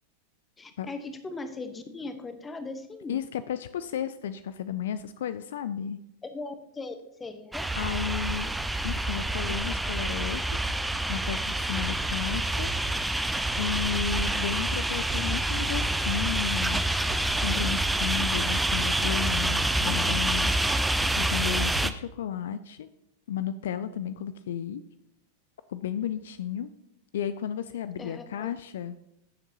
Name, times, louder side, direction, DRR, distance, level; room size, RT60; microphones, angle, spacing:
voice 1, 0.6-3.2 6.2-7.6 28.0-28.5, left 3 dB, 15° left, 9 dB, 1.0 m, -39 dB
voice 2, 3.1-6.0 7.8-8.5 8.8-10.7 11.1-12.7 13.5-16.8 17.4-20.7 21.2-22.9 23.3-24.8 25.7-26.7 27.1-29.0, left 9 dB, 60° left, 13 dB, 0.3 m, -33 dB
sound 1, 7.5-21.9, right 1 dB, 5° right, 0.5 m, -27 dB
15.0 x 7.0 x 2.8 m, 0.82 s
figure-of-eight pair, 90°, 0 cm